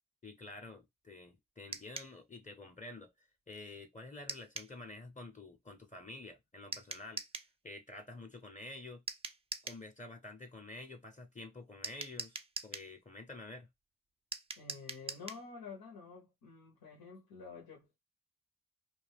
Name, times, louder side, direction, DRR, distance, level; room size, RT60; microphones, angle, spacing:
voice 1, 0.2-7.2 7.6-9.0 9.6-12.4 12.6-13.7, left 2 dB, 20° left, 0.7 m, -49 dB
sound 1, 1.7-2.1 4.3-4.7 6.7-7.5 9.1-9.8 11.8-12.9 14.3-15.4, right 3 dB, 15° right, 0.4 m, -43 dB
voice 2, 14.6-18.0, left 5 dB, 90° left, 0.9 m, -50 dB
2.3 x 2.2 x 3.4 m
cardioid pair, 45°, 35 cm